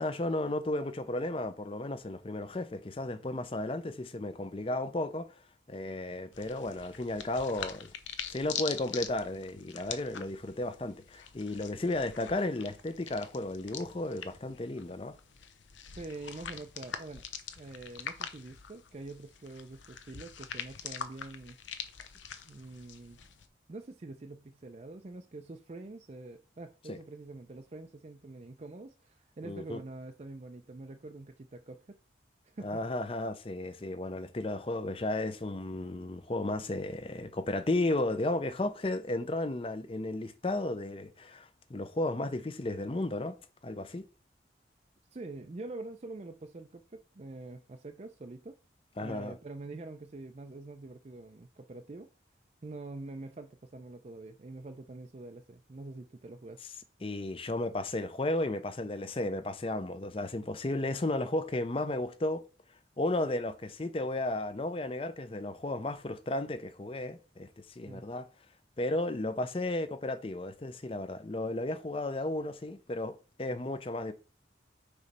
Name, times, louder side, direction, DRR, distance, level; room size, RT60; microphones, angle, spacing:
voice 1, 0.0-5.4 5.7-7.9 8.3-15.2 26.9-27.0 29.4-29.8 32.6-43.4 43.6-44.1 49.0-49.4 57.0-62.4 63.0-68.3 68.8-74.1, left 2 dB, 30° left, 0.5 m, -34 dB
sound 1, 6.3-23.5, left 8 dB, 90° left, 0.7 m, -44 dB
voice 2, 16.0-17.2 17.6-21.6 22.5-23.2 23.7-32.0 32.4-32.8 45.1-48.6 49.0-52.1 52.6-56.6 67.9-68.0, right 2 dB, 35° right, 0.4 m, -45 dB
6.7 x 3.2 x 5.3 m
head